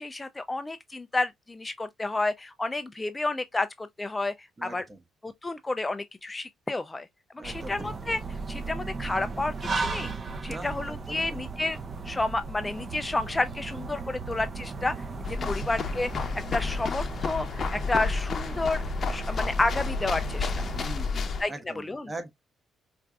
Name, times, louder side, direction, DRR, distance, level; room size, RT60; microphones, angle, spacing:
voice 1, 0.0-4.8 5.2-7.1 7.4-8.2 8.5-10.1 10.4-11.8 12.0-14.9 15.3-16.2 16.5-18.8 19.1-20.7 21.4-22.1, left 2 dB, 20° left, 0.3 m, -30 dB
voice 2, 4.6-5.0 7.4-7.9 10.4-11.4 15.4-15.6 20.8-22.3, right 2 dB, 20° right, 1.0 m, -41 dB
sound 1, 7.4-20.9, right 3 dB, 45° right, 0.8 m, -36 dB
sound 2, 15.2-21.4, left 5 dB, 50° left, 0.6 m, -31 dB
4.4 x 2.5 x 2.2 m
cardioid pair, 90°, 0 cm